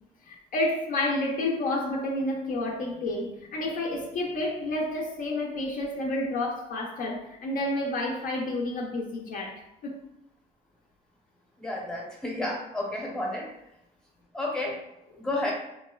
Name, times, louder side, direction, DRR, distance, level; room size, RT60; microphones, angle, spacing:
voice 1, 0.2-10.0, left 1 dB, 55° left, 0.5 m, -30 dB
voice 2, 11.6-13.5 14.3-14.8 15.2-15.5, left 1 dB, 5° left, 0.7 m, -31 dB
3.5 x 2.1 x 2.2 m
cardioid pair, 110°, 17 cm